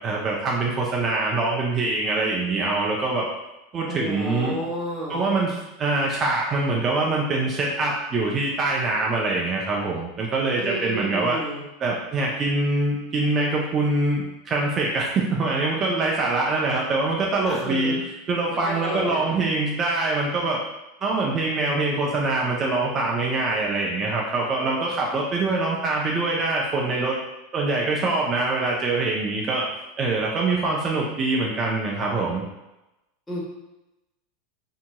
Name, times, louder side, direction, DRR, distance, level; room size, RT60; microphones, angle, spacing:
voice 1, 0.0-3.3 3.7-4.6 5.1-11.4 11.8-18.0 18.3-20.6 21.0-27.1 27.5-29.7 30.0-32.4, right 3 dB, 35° right, -3 dB, 0.5 m, -24 dB
voice 2, 3.9-5.3 10.6-11.6 17.4-18.0 18.5-19.4 33.3-33.4, equal, 10° left, -6 dB, 1.2 m, -31 dB
2.8 x 2.7 x 2.2 m, 0.94 s
hypercardioid pair, 100°, 0 cm